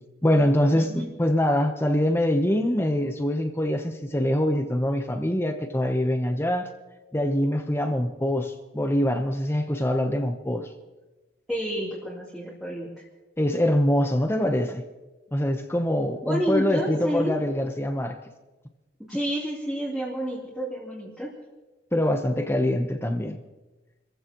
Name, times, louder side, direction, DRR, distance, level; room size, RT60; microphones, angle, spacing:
voice 1, 0.2-6.7 7.1-10.7 13.4-14.8 15.3-18.2 21.9-23.4, left 1 dB, 15° left, 1.0 m, -24 dB
voice 2, 0.7-1.1 11.5-12.9 16.2-17.3 19.1-21.3, right 1 dB, ahead, 3.4 m, -29 dB
29.0 x 15.0 x 3.1 m
head